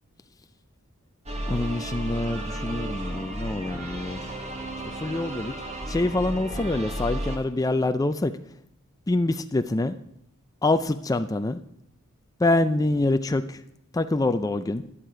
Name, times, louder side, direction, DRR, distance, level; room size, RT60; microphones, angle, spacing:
sound 1, 1.3-7.4, right 1 dB, 30° right, 1.6 m, -33 dB
voice 1, 1.5-4.2 5.0-5.5 5.9-8.3 9.1-10.0 10.6-11.6 12.4-13.6 13.9-14.8, left 2 dB, 15° left, 10 dB, 0.4 m, -25 dB
11.0 x 10.5 x 4.9 m, 0.73 s
head